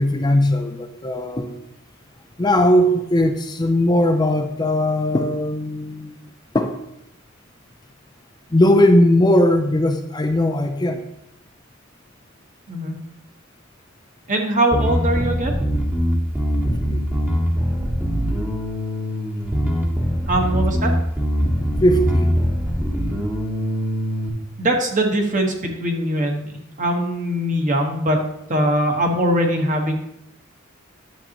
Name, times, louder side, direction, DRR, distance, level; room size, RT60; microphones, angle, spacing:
voice 1, 0.0-1.6 2.4-6.2 6.5-6.7 8.5-11.1 16.6-17.0 20.5-20.6 21.8-22.4, left 1 dB, 20° left, 5 dB, 0.5 m, -18 dB
voice 2, 14.3-15.5 20.3-20.9 24.6-28.2 28.5-30.0, right 1 dB, 40° right, 2 dB, 1.3 m, -21 dB
Bass guitar, 14.7-24.3, equal, 10° right, 1.1 m, -22 dB
10.5 x 7.6 x 2.9 m, 0.79 s
head